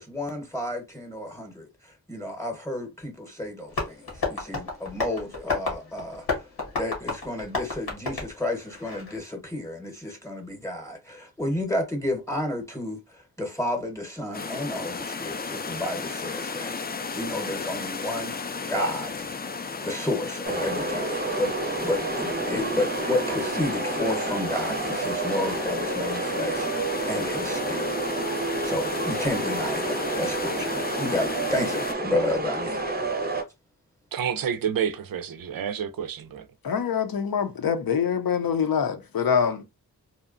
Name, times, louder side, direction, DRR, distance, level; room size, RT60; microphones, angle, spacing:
voice 1, 0.0-6.4 6.8-16.7 17.2-18.4 18.7-19.3 19.8-21.5 21.8-27.9 28.6-32.8, left 1 dB, 10° left, 0.9 m, -31 dB
Tap, 3.7-9.2, left 3 dB, 85° left, 1.1 m, -32 dB
sound 1, 14.3-31.9, left 4 dB, 25° left, 0.4 m, -34 dB
sound 2, 20.4-33.4, right 2 dB, 25° right, 0.6 m, -29 dB
voice 2, 34.1-36.5, right 8 dB, 65° right, 0.5 m, -29 dB
voice 3, 36.6-39.6, left 7 dB, 65° left, 0.6 m, -25 dB
2.8 x 2.1 x 2.4 m
cardioid pair, 45°, 37 cm